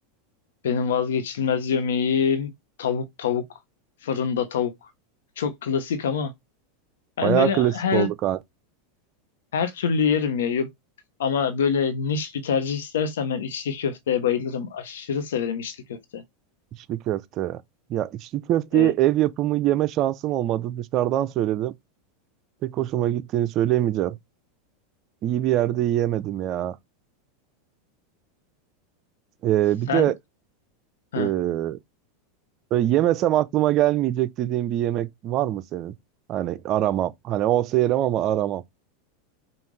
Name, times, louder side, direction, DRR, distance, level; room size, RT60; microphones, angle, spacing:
voice 1, 0.6-2.5 2.8-3.4 4.0-4.7 5.4-6.3 7.2-8.1 9.5-10.7 11.2-16.2 18.7-18.9 29.9-30.1 31.1-31.3, left 6 dB, 80° left, 1.0 m, -25 dB
voice 2, 7.2-8.4 16.9-17.6 17.9-21.7 22.6-24.2 25.2-26.8 29.4-30.2 31.2-31.8 32.7-35.9 36.3-38.6, right 13 dB, 45° right, 0.5 m, -23 dB
5.5 x 2.4 x 3.2 m
hypercardioid pair, 105°, 0 cm